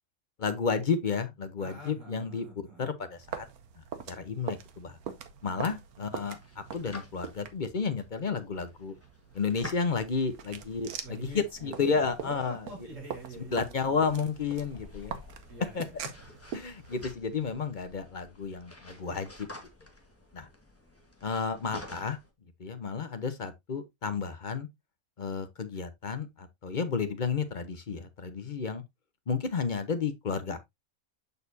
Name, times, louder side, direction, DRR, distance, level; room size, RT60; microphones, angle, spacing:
voice 1, 0.4-2.5 2.8-3.5 3.8-5.0 5.4-8.9 9.3-12.9 13.4-15.2 15.7-15.9 16.5-19.5 20.3-20.5 21.2-22.2 22.6-24.7 25.2-28.8 29.3-30.6, left 5 dB, 40° left, 0.7 m, -32 dB
voice 2, 1.6-2.9 5.4-6.1 11.0-14.3 15.5-16.4, right 2 dB, 60° right, 3.3 m, -47 dB
sound 1, 3.2-17.1, right 8 dB, 85° right, 1.3 m, -44 dB
sound 2, 5.9-22.3, left 1 dB, 10° left, 1.3 m, -51 dB
6.8 x 6.4 x 2.6 m
omnidirectional pair, 1.5 m